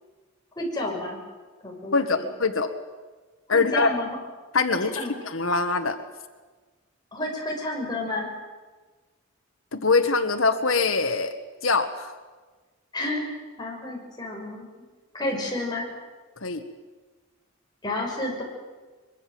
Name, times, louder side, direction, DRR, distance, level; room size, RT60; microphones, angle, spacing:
voice 1, 0.5-1.2 1.6-2.2 3.5-4.2 4.7-5.1 7.1-8.3 12.9-14.7 15.1-15.9 17.8-18.4, left 2 dB, 20° left, -1 dB, 6.8 m, -30 dB
voice 2, 1.9-2.7 3.5-3.9 4.5-6.0 9.7-11.3 11.6-12.1 16.4-16.6, left 4 dB, 75° left, 8 dB, 1.7 m, -23 dB
24.5 x 23.0 x 7.9 m, 1.3 s
head